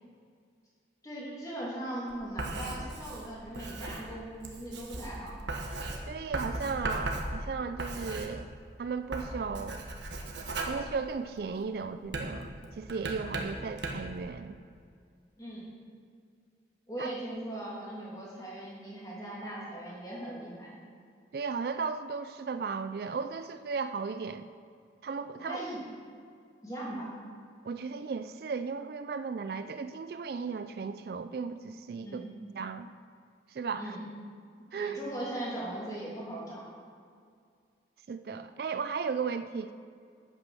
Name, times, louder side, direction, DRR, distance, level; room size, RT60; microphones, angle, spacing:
voice 1, 1.0-5.4 15.4-15.7 16.9-20.7 25.4-25.8 26.6-27.1 32.0-32.3 33.8-34.0 34.7-36.6, right 1 dB, 20° left, -6 dB, 2.7 m, -39 dB
Writing, 2.1-8.7 9.0-11.5 12.0-14.2, right 2 dB, 80° right, 1.3 m, -37 dB
voice 2, 6.1-8.5 8.8-9.8 10.6-14.6 17.0-17.1 21.3-24.5 25.0-25.7 27.6-32.2 32.6-32.9 33.5-34.0 34.7-35.0 38.1-39.7, right 5 dB, 55° right, 10 dB, 0.3 m, -35 dB
8.4 x 8.3 x 6.2 m, 2.2 s
head